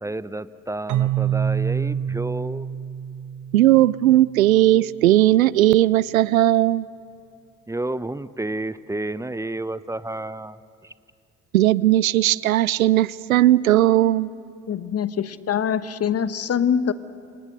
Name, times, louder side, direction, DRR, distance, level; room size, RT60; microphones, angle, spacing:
voice 1, 0.0-2.7 7.7-10.6 10.8-10.9, right 2 dB, 5° right, 16 dB, 0.7 m, -30 dB
Keyboard (musical), 0.9-4.6, right 9 dB, 45° right, 1.2 m, -26 dB
voice 2, 3.5-6.9 11.5-14.3, right 14 dB, 85° right, 22 dB, 0.5 m, -17 dB
voice 3, 14.7-16.9, left 8 dB, 35° left, 14 dB, 1.1 m, -24 dB
28.0 x 25.0 x 6.6 m, 2.4 s
figure-of-eight pair, 55°, 41 cm